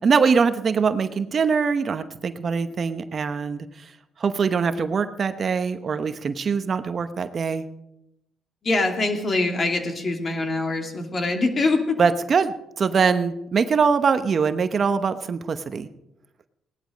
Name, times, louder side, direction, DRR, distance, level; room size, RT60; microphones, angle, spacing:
voice 1, 0.0-3.7 4.2-7.7 12.0-15.9, right 5 dB, 45° right, 10 dB, 0.9 m, -23 dB
voice 2, 8.6-12.0, left 2 dB, 40° left, 3 dB, 2.7 m, -24 dB
17.5 x 11.5 x 5.2 m, 0.87 s
cardioid pair, 90°, 0 cm